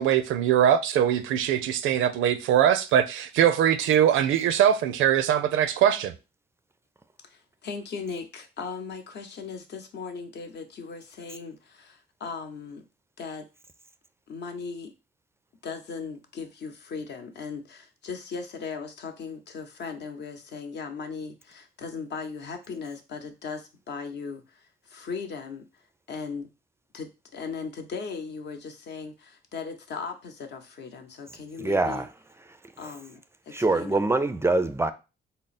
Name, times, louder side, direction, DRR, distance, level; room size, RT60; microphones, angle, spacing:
voice 1, 0.0-6.1, right 10 dB, 85° right, 0.5 m, -22 dB
voice 2, 7.2-12.8 13.2-13.5 14.3-14.9 15.6-25.8 26.1-26.5 26.9-32.0 32.8-33.2 33.5-34.0, left 5 dB, 60° left, 0.8 m, -38 dB
voice 3, 31.6-32.1 32.5-32.6 32.8-32.9 33.5-34.9, right 2 dB, 15° right, 0.3 m, -24 dB
3.6 x 2.0 x 4.0 m
cardioid pair, 90°, 20 cm